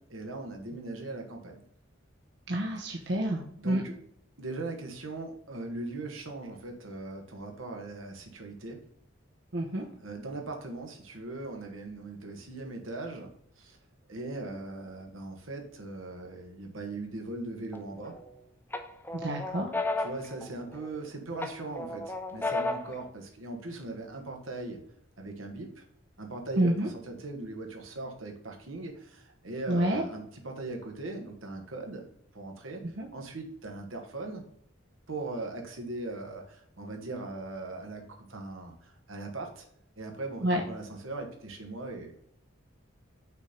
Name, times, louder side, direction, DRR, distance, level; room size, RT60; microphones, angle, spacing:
voice 1, 0.0-1.6 2.8-2.9 3.6-4.0 4.4-8.8 10.0-13.3 13.6-13.8 14.1-18.1 20.0-24.8 25.2-25.8 26.2-32.1 32.3-32.8 33.1-34.4 35.1-39.6 40.0-42.1, right 2 dB, 80° right, 2 dB, 1.6 m, -39 dB
voice 2, 2.5-3.8 9.5-9.8 19.2-19.7 26.6-26.9 29.7-30.0 32.8-33.1 40.4-40.6, right 1 dB, 55° right, 0 dB, 0.9 m, -28 dB
sound 1, 17.7-18.3 18.7-21.0 21.4-23.0, left 2 dB, 10° left, 0.6 m, -34 dB
6.1 x 4.5 x 5.2 m, 0.67 s
head